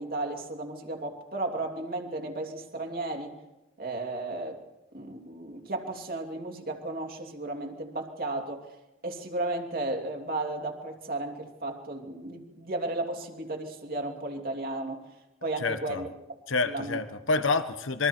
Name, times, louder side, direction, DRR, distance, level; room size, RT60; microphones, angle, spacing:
voice 1, 0.0-3.3 3.8-4.6 4.9-8.7 9.0-15.0 15.4-16.1 16.7-17.0, right 2 dB, 45° right, 3 dB, 3.0 m, -34 dB
voice 2, 15.6-16.0 16.5-18.1, left 3 dB, 70° left, 10 dB, 1.3 m, -28 dB
26.5 x 23.0 x 4.6 m, 1.0 s
head